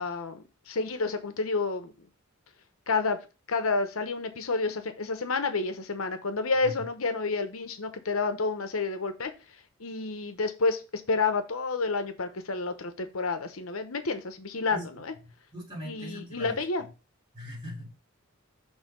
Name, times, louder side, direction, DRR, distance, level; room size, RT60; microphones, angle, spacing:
voice 1, 0.0-2.1 2.9-3.2 3.5-9.3 9.8-15.1 15.8-16.8, left 3 dB, 80° left, 8 dB, 1.0 m, -30 dB
voice 2, 15.5-16.6 17.3-17.9, equal, 25° right, -3 dB, 3.6 m, -40 dB
6.5 x 3.4 x 5.1 m, 0.29 s
head